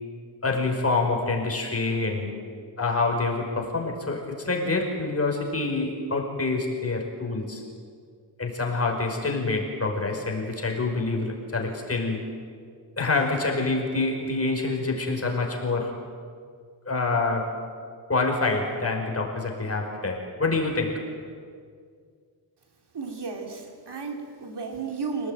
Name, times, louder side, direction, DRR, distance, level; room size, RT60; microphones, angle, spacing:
voice 1, 0.4-2.3 2.8-7.6 8.4-12.2 13.0-16.0 16.9-17.6 18.1-21.1, left 3 dB, 35° left, 1 dB, 5.3 m, -26 dB
voice 2, 22.9-25.3, right 5 dB, 65° right, 3 dB, 3.4 m, -33 dB
27.5 x 18.5 x 9.3 m, 2.1 s
wide cardioid pair, 100°, 43 cm